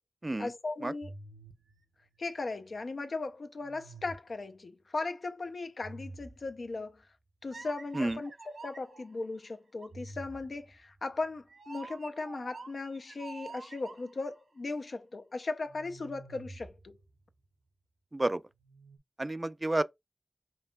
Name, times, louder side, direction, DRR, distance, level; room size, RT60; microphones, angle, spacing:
voice 1, 0.4-1.1 2.2-7.0 7.4-17.0, left 3 dB, 70° left, 0.5 m, -37 dB
sound 1, 1.0-2.8 3.6-4.5 5.8-6.8 7.5-9.1 9.8-14.3 15.6-17.5 18.6-19.0, right 3 dB, 80° right, 0.6 m, -48 dB
voice 2, 19.2-19.8, right 2 dB, 30° right, 0.4 m, -30 dB
5.4 x 2.6 x 2.2 m
wide cardioid pair, 55°, 0 cm